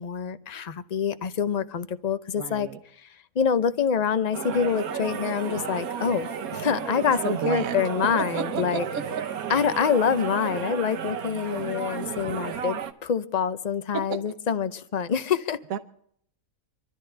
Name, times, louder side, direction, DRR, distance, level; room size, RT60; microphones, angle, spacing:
voice 1, 0.0-2.7 3.4-8.9 9.5-15.6, left 7 dB, 45° left, 0.5 m, -26 dB
voice 2, 2.4-2.8 7.2-7.8 8.1-8.8 14.1-14.2 15.7-15.8, right 7 dB, 70° right, 1.2 m, -31 dB
sound 1, 4.3-12.9, right 7 dB, 90° right, 1.4 m, -33 dB
26.0 x 13.0 x 3.3 m
omnidirectional pair, 1.5 m